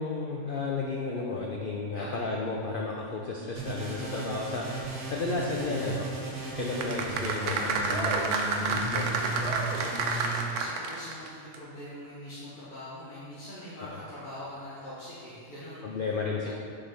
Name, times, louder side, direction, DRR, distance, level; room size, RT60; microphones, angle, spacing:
voice 1, 0.0-4.8 5.1-6.1 6.6-8.2 8.7-9.0 13.8-13.9 15.8-16.5, left 3 dB, 60° left, -1 dB, 0.5 m, -33 dB
voice 2, 1.9-2.3 9.0-16.1 16.4-16.5, left 1 dB, 35° left, -9 dB, 1.2 m, -43 dB
sound 1, 3.5-10.4, right 2 dB, 50° right, 1.8 m, -35 dB
sound 2, 6.7-11.3 11.5-11.6, right 4 dB, 80° right, 1.2 m, -29 dB
6.4 x 4.1 x 5.7 m, 2.4 s
omnidirectional pair, 1.6 m